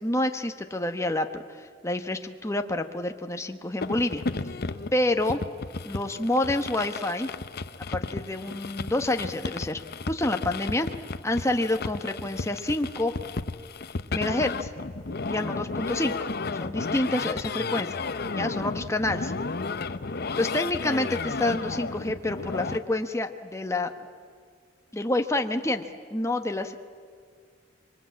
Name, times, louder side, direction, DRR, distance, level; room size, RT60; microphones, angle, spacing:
voice 1, 0.0-1.4 1.8-4.2 4.9-5.4 5.8-7.3 7.9-9.8 10.1-10.9 11.2-13.1 14.1-14.7 15.3-16.1 16.5-17.9 18.3-19.3 20.4-23.9 24.9-25.8 26.1-26.7, left 1 dB, 15° left, 6 dB, 1.1 m, -28 dB
sound 1, 3.8-22.8, left 3 dB, 55° left, 0.8 m, -33 dB
26.0 x 23.5 x 8.6 m, 2.1 s
head